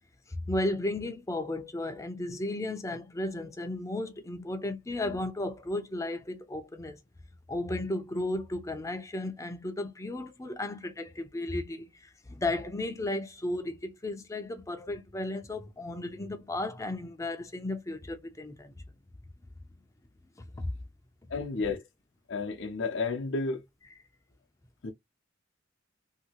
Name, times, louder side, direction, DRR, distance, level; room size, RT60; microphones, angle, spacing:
voice 1, 0.3-7.0 7.5-18.7 20.4-20.7, left 2 dB, 15° left, 0.5 m, -34 dB
voice 2, 21.3-21.9 22.3-23.6 24.8-24.9, left 4 dB, 65° left, 0.6 m, -31 dB
2.8 x 2.8 x 2.8 m
head